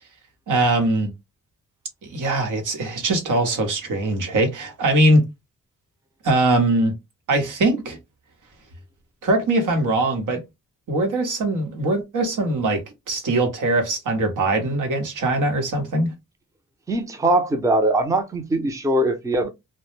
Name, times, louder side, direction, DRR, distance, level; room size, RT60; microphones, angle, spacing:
voice 1, 0.5-1.1 2.0-5.2 6.2-6.9 7.3-8.0 9.2-10.4 10.9-16.1, right 2 dB, 80° right, 0.9 m, -21 dB
voice 2, 16.9-19.5, right 1 dB, 10° right, 0.5 m, -21 dB
2.1 x 2.0 x 3.0 m
cardioid pair, 90°, 31 cm